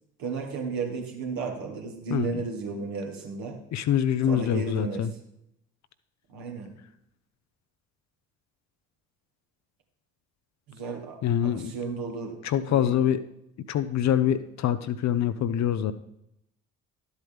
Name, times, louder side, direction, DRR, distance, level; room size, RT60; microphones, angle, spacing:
voice 1, 0.2-3.6 4.3-5.1 6.3-6.7 10.7-12.4 12.7-13.0, right 4 dB, 60° right, 2 dB, 1.9 m, -34 dB
voice 2, 2.1-2.4 3.7-5.1 11.2-11.7 12.4-13.2 13.7-15.9, left 9 dB, 45° left, 12 dB, 0.6 m, -25 dB
12.0 x 8.1 x 3.5 m, 0.80 s
figure-of-eight pair, 45°, 39 cm